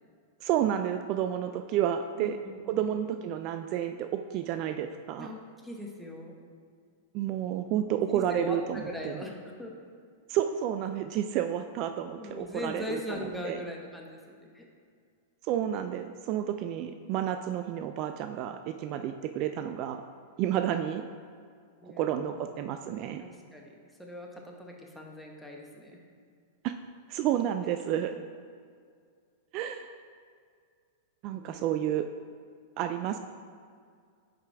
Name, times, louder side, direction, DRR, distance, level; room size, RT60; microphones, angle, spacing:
voice 1, 0.4-2.4 2.7-5.3 7.1-9.2 10.3-13.6 15.4-20.0 20.4-21.1 21.8-23.2 26.6-26.7 27.1-28.1 29.5-29.9 31.2-32.1 32.8-33.2, right 10 dB, 45° right, 8 dB, 0.3 m, -30 dB
voice 2, 2.2-2.9 5.2-6.4 8.1-9.7 12.2-14.6 21.8-22.4 23.2-23.7 24.0-26.0 31.3-31.7, left 1 dB, 5° left, 0 dB, 1.2 m, -40 dB
9.5 x 5.1 x 3.4 m, 2.1 s
hypercardioid pair, 105°, 0 cm